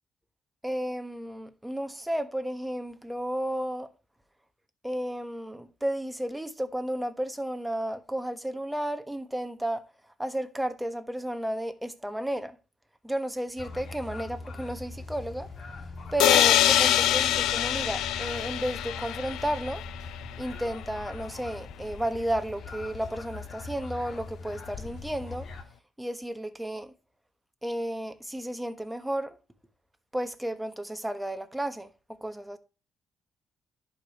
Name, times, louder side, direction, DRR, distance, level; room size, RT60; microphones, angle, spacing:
voice 1, 0.6-3.9 4.8-9.8 10.2-12.6 13.0-15.5 16.1-19.8 20.4-25.5 26.0-26.9 27.6-29.4 30.1-32.6, right 1 dB, 5° right, 1.2 m, -33 dB
sound 1, 13.6-25.6, left 3 dB, 55° left, 1.7 m, -41 dB
sound 2, 16.2-20.0, left 12 dB, 90° left, 0.5 m, -24 dB
11.0 x 5.1 x 3.0 m
cardioid pair, 90°, 0 cm